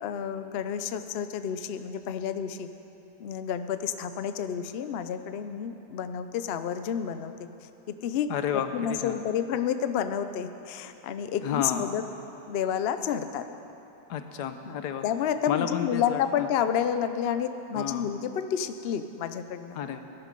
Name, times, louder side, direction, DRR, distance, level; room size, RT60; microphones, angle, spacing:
voice 1, 0.0-2.7 3.2-7.3 7.9-8.3 8.7-12.0 12.5-13.5 14.7-19.8, left 8 dB, 90° left, 10 dB, 0.5 m, -30 dB
voice 2, 8.3-9.2 11.4-11.9 14.1-15.0 15.5-16.5 17.7-18.1 19.7-20.0, left 8 dB, 75° left, 8 dB, 1.3 m, -31 dB
17.5 x 10.5 x 5.3 m, 3.0 s
omnidirectional pair, 1.8 m